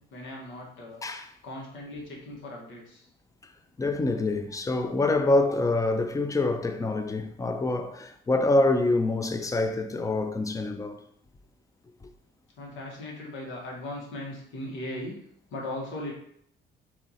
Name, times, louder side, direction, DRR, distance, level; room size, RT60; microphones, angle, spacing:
voice 1, 0.0-1.0 1.4-3.1 12.6-15.2 15.5-16.1, left 1 dB, 75° left, 1.5 m, -38 dB
voice 2, 3.8-11.0, left 2 dB, 15° left, 0.5 m, -26 dB
4.4 x 2.8 x 4.1 m
cardioid pair, 90°, 20 cm